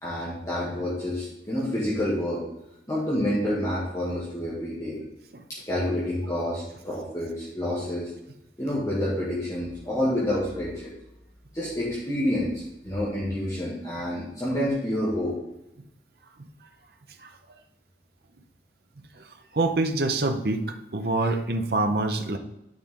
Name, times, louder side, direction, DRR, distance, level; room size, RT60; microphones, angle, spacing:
voice 1, 0.0-2.4 2.9-5.0 5.5-8.1 8.6-10.9 11.5-15.4, left 1 dB, 20° left, -8 dB, 1.9 m, -28 dB
voice 2, 19.5-22.4, right 2 dB, 60° right, 5 dB, 0.7 m, -25 dB
9.6 x 4.9 x 3.7 m, 0.86 s
head